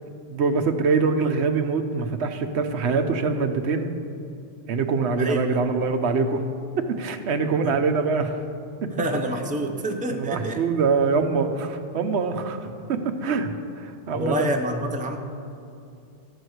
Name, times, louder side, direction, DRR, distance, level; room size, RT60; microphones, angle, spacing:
voice 1, 0.3-3.9 4.7-6.4 6.9-8.3 8.8-8.9 10.1-14.5, right 4 dB, 80° right, 7 dB, 1.0 m, -24 dB
voice 2, 5.2-5.6 7.6-7.7 8.9-10.6 14.1-15.2, right 1 dB, 10° right, 3 dB, 0.6 m, -27 dB
13.0 x 4.6 x 7.9 m, 2.5 s
omnidirectional pair, 1.1 m